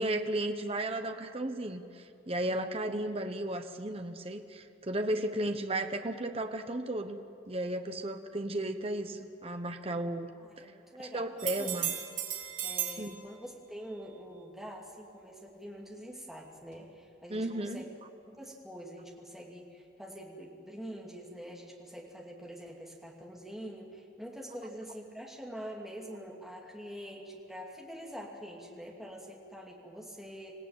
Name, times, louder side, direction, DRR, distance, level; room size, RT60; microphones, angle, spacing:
voice 1, 0.0-7.2 7.5-10.3 10.6-10.7 11.1-11.9 13.0-13.2 17.3-17.8, right 1 dB, 30° right, 6 dB, 1.0 m, -34 dB
voice 2, 10.5-11.3 11.6-11.8 12.6-17.9 18.3-30.5, equal, ahead, -1 dB, 2.7 m, -45 dB
sound 1, 11.4-13.0 16.7-16.8, right 10 dB, 80° right, 4.2 m, -35 dB
26.0 x 17.0 x 9.0 m, 2.8 s
head